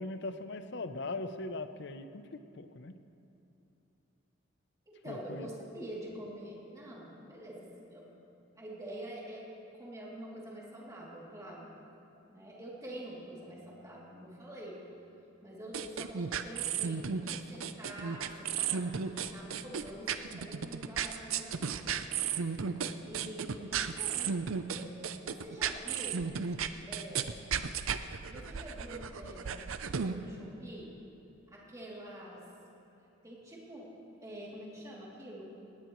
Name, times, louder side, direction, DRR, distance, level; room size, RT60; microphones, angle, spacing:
voice 1, 0.0-3.0 5.1-5.5, left 2 dB, 60° left, 10 dB, 0.7 m, -40 dB
voice 2, 5.0-8.0 8.6-9.5 9.8-11.7 12.3-14.8 15.4-22.0 23.0-24.4 24.7-24.9 25.2-26.2 26.9-27.3 28.3-30.9 31.5-32.4 33.2-33.9 34.2-35.6, right 1 dB, 15° right, -5 dB, 2.9 m, -46 dB
sound 1, 15.7-30.2, right 6 dB, 90° right, 0.6 m, -34 dB
18.5 x 18.5 x 3.2 m, 3.0 s
head